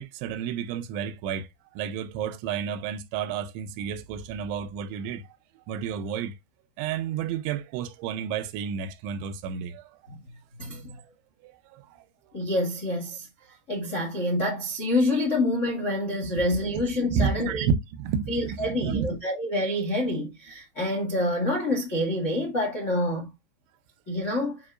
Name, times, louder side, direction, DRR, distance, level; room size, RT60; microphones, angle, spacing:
voice 1, 0.0-1.5 1.8-5.2 5.7-6.3 6.8-9.8 10.7-10.8 11.7-11.8 16.2-16.4 16.7-16.8 17.1-19.1, right 7 dB, 85° right, 3.1 m, -30 dB
voice 2, 12.3-13.3 13.7-17.7 18.3-23.3 24.1-24.6, left 1 dB, 85° left, 0.6 m, -27 dB
8.8 x 5.2 x 2.4 m
omnidirectional pair, 5.3 m